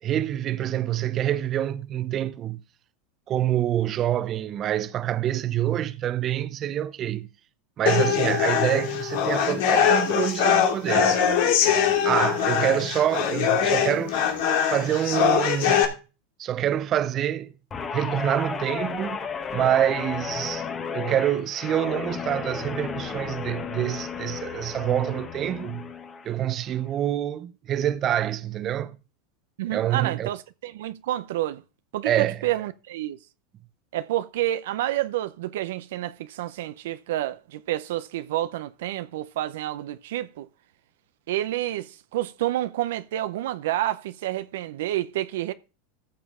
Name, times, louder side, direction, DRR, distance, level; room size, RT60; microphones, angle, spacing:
voice 1, 0.0-2.6 3.3-7.3 7.8-11.2 12.0-14.3 14.7-15.9 16.4-17.5 17.9-19.2 19.5-20.7 20.9-25.9 26.2-29.0 29.7-30.3 32.0-32.5, right 11 dB, 35° right, 0.7 m, -26 dB
sound 1, 7.9-15.8, left 8 dB, 70° left, 2.4 m, -22 dB
voice 2, 12.4-12.7 29.6-31.6 31.9-33.2 33.9-40.5 41.3-45.5, right 14 dB, 75° right, 0.6 m, -29 dB
Guitar, 17.7-26.3 26.7-27.0, left 6 dB, 25° left, 1.4 m, -33 dB
14.5 x 6.8 x 3.7 m
supercardioid pair, 120°, 0 cm